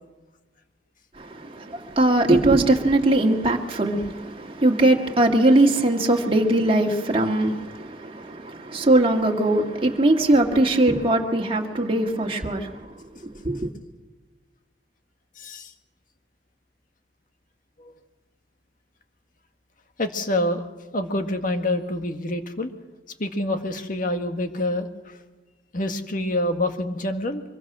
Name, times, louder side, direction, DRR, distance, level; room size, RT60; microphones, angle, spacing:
voice 1, 1.2-12.9 13.2-13.7, right 1 dB, 30° right, 2.0 m, -21 dB
voice 2, 15.4-15.7 17.8-17.9 20.0-20.7 20.9-22.7 23.2-25.1 25.7-27.4, left 1 dB, 50° left, 1.8 m, -26 dB
24.5 x 22.5 x 6.2 m
head